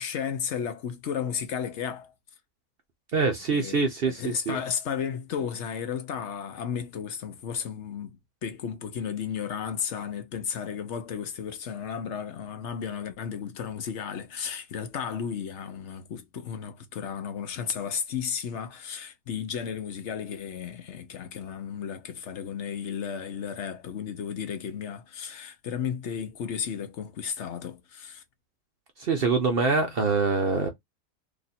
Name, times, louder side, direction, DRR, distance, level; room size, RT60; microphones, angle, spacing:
voice 1, 0.0-2.1 3.5-8.2 8.4-28.2, left 7 dB, 60° left, 0.9 m, -34 dB
voice 2, 3.1-4.6 29.0-30.7, right 4 dB, 50° right, 0.7 m, -25 dB
3.0 x 2.5 x 4.1 m
omnidirectional pair, 1.6 m